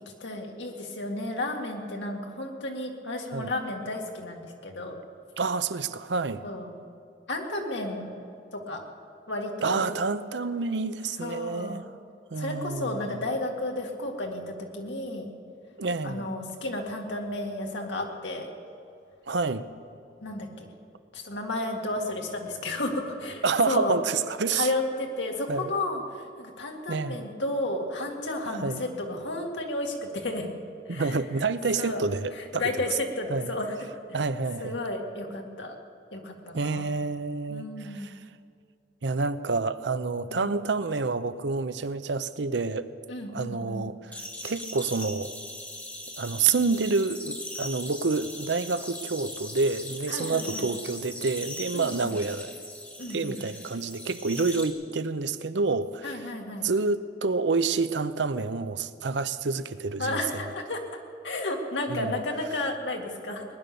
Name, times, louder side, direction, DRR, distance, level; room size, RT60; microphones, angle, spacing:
voice 1, 0.2-5.0 6.4-6.7 7.3-8.1 8.5-8.8 9.3-9.9 11.2-11.9 12.4-15.3 16.0-18.5 20.2-20.7 21.1-24.0 24.5-30.5 30.9-31.2 31.8-32.0 32.3-33.9 34.6-35.8 36.1-36.9 37.5-38.1 40.3-40.6 43.1-43.9 50.1-50.7 51.7-52.2 53.0-53.4 56.0-56.7 60.0-60.8 61.2-63.5, left 2 dB, 80° left, 2 dB, 2.1 m, -32 dB
voice 2, 5.4-6.4 9.6-11.9 12.3-13.2 15.8-16.3 19.3-19.7 23.4-24.7 25.5-25.7 26.9-27.3 28.5-28.8 30.9-32.8 33.3-33.5 34.1-34.8 36.5-38.1 39.0-42.9 43.3-44.1 44.4-45.3 46.2-52.5 53.1-56.3 56.6-60.2 61.9-62.2, right 4 dB, 75° right, 13 dB, 0.7 m, -28 dB
sound 1, 44.1-54.7, left 1 dB, 10° left, 1.5 m, -40 dB
19.5 x 10.5 x 6.9 m, 2.4 s
head